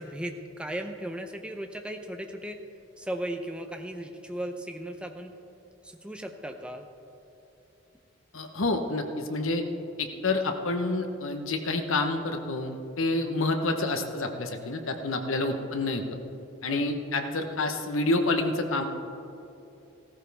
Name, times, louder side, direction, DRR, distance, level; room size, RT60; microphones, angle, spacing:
voice 1, 0.0-2.6 3.0-5.4 5.8-6.9 15.3-15.5 16.7-16.8, right 1 dB, 5° right, 5 dB, 0.6 m, -36 dB
voice 2, 8.3-9.7 10.0-16.0 16.6-18.8, left 2 dB, 70° left, 5 dB, 1.0 m, -28 dB
15.5 x 14.0 x 3.5 m, 2.8 s
head